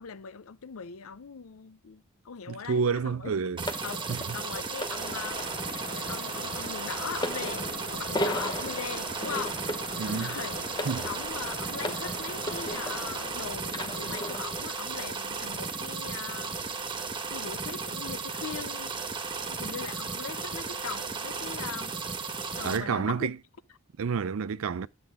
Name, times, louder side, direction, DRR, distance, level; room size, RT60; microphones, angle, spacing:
voice 1, 0.0-3.3 3.8-5.4 5.9-9.6 10.1-10.6 11.0-16.6 17.3-18.9 19.5-22.0 22.6-23.3, left 6 dB, 80° left, 0.6 m, -40 dB
voice 2, 2.5-3.6 4.1-4.4 10.0-10.4 10.9-11.1 22.6-23.4 24.0-24.9, right 5 dB, 75° right, 0.4 m, -29 dB
sound 1, 3.6-22.8, right 4 dB, 20° right, 1.4 m, -35 dB
sound 2, 3.7-13.3 13.7-14.7 15.5-15.7, equal, 20° left, 0.8 m, -37 dB
sound 3, 5.0-15.2, left 2 dB, 45° left, 2.3 m, -42 dB
10.5 x 7.8 x 3.6 m
head